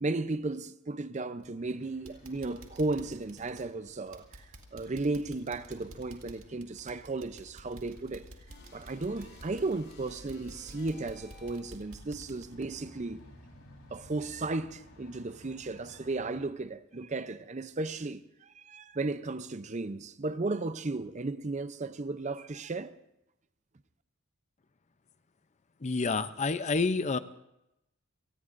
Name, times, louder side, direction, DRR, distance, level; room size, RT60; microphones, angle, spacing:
voice 1, 0.0-4.3 4.7-8.3 8.7-13.2 13.9-22.9, right 3 dB, 35° right, 0.5 m, -35 dB
sound 1, 1.4-1.7 2.1-13.6 14.0-14.1 14.6-14.7, right 1 dB, 65° right, 2.2 m, -52 dB
sound 2, 1.6-16.4, left 1 dB, 75° left, 4.2 m, -57 dB
sound 3, 8.5-11.9, left 2 dB, 50° left, 6.1 m, -54 dB
voice 2, 25.8-27.2, left 4 dB, 30° left, 0.5 m, -28 dB
29.0 x 19.5 x 2.6 m
head